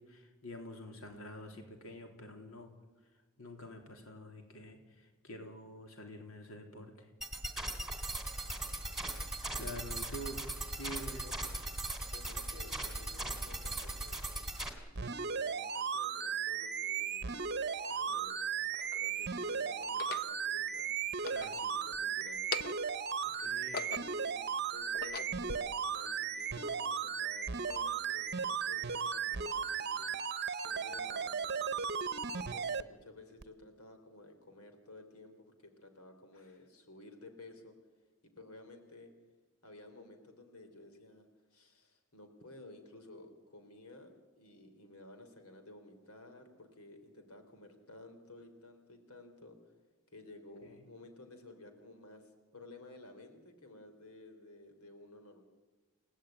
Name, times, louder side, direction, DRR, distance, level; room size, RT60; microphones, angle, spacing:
voice 1, 0.1-2.7 3.4-7.1 9.5-10.4 10.8-11.2 21.3-21.5 23.2-23.8 50.6-50.8, equal, 70° left, 4 dB, 3.6 m, -47 dB
sound 1, 7.2-14.7, right 2 dB, ahead, 3.0 m, -39 dB
voice 2, 8.4-9.1 11.1-11.3 12.1-14.5 15.0-18.6 19.0-20.9 21.4-22.8 23.3-30.1 30.6-31.9 32.4-37.7 38.4-39.1 39.6-49.6 50.1-55.4, left 2 dB, 90° left, 6 dB, 3.5 m, -54 dB
sound 2, 14.9-32.8 33.4-33.5, right 7 dB, 50° right, 0.9 m, -36 dB
sound 3, 17.3-17.4 18.3-19.1 19.8-20.3 21.1-22.0 22.3-23.0 23.4-24.3 24.8-25.6, left 5 dB, 45° left, 0.9 m, -42 dB
30.0 x 17.5 x 9.0 m, 1.3 s
head